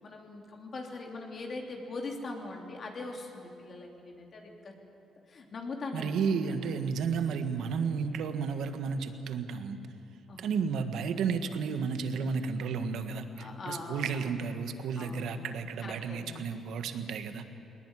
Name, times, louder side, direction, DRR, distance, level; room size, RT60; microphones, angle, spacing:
voice 1, 0.0-4.7 5.3-6.8 10.3-10.5 13.4-14.2 15.0-15.5 15.8-16.5, left 3 dB, 50° left, 1 dB, 3.1 m, -41 dB
voice 2, 5.9-9.8 10.4-17.4, right 5 dB, 75° right, 8 dB, 1.5 m, -32 dB
20.5 x 19.0 x 9.8 m, 2.7 s
cardioid pair, 90°, 0 cm